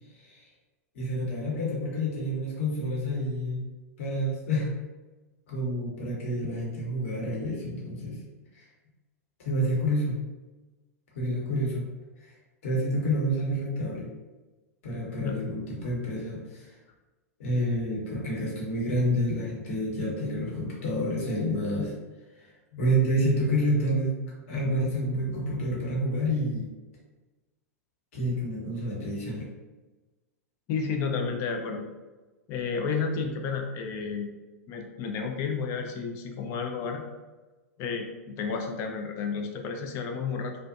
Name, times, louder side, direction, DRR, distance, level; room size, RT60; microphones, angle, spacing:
voice 1, 0.9-3.6 4.0-4.7 5.5-8.2 8.5-8.6 9.4-10.2 11.1-11.8 12.6-14.1 14.8-16.7 17.4-21.9 22.4-24.2 24.5-26.7 28.1-29.5, equal, 60° left, -4 dB, 1.0 m, -28 dB
voice 2, 30.7-31.9 32.5-34.3 34.7-37.0 37.8-40.6, left 5 dB, 35° left, 3 dB, 0.4 m, -31 dB
2.4 x 2.1 x 2.5 m, 1.2 s
figure-of-eight pair, 100°, 8 cm